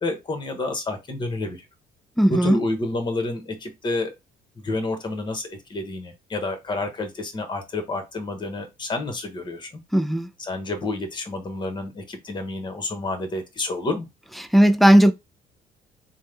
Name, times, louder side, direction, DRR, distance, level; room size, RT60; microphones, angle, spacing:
voice 1, 0.0-1.6 2.3-4.1 4.6-9.8 10.4-14.1, left 2 dB, 25° left, 1.0 m, -29 dB
voice 2, 2.2-2.6 9.9-10.3 14.5-15.1, equal, ahead, 0.4 m, -16 dB
3.5 x 2.1 x 3.3 m
cardioid pair, 110°, 17 cm